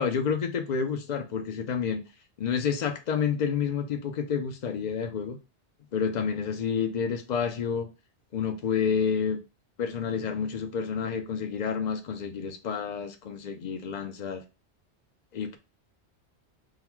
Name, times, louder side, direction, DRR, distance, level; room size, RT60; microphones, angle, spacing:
voice 1, 0.0-2.0 2.4-5.4 5.9-7.9 8.3-9.4 9.8-14.4 15.3-15.6, left 6 dB, 50° left, 0.6 m, -29 dB
3.7 x 2.1 x 4.4 m
omnidirectional pair, 1.2 m